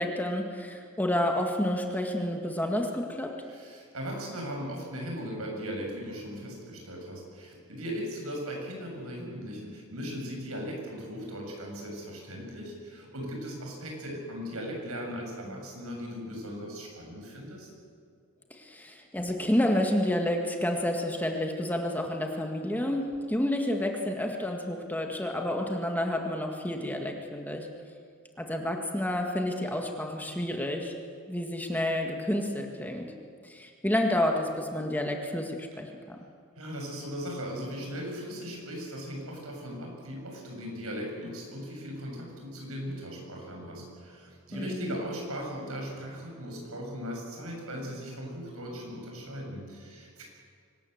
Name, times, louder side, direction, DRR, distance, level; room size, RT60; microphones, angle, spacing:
voice 1, 0.0-3.3 15.5-15.6 18.5-27.7 28.4-30.9 31.3-33.1 33.4-36.2 44.5-45.0, left 1 dB, 10° left, 2 dB, 1.9 m, -30 dB
voice 2, 3.5-17.7 36.6-50.2, equal, 80° right, 0 dB, 7.3 m, -38 dB
24.5 x 19.0 x 7.9 m, 2.1 s
head